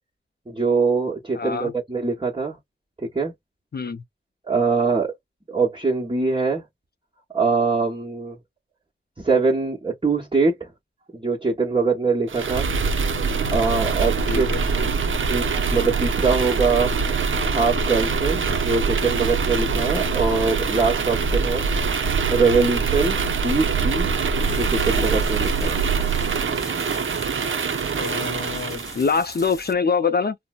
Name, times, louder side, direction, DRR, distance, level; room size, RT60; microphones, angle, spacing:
voice 1, 0.5-2.6 3.0-3.3 4.4-5.1 5.5-6.6 7.3-8.4 9.2-10.7 11.1-12.7 13.5-14.5 14.8-16.9 17.5-21.7 22.3-24.2 24.5-25.8, right 4 dB, 25° right, 1.0 m, -23 dB
voice 2, 1.3-1.7 3.7-4.0 14.3-14.6 28.0-30.4, left 5 dB, 50° left, 0.4 m, -24 dB
sound 1, 12.3-29.0, right 5 dB, 70° right, 0.5 m, -23 dB
sound 2, 24.4-29.7, left 1 dB, 15° left, 1.0 m, -40 dB
3.9 x 2.1 x 2.3 m
wide cardioid pair, 45°, 21 cm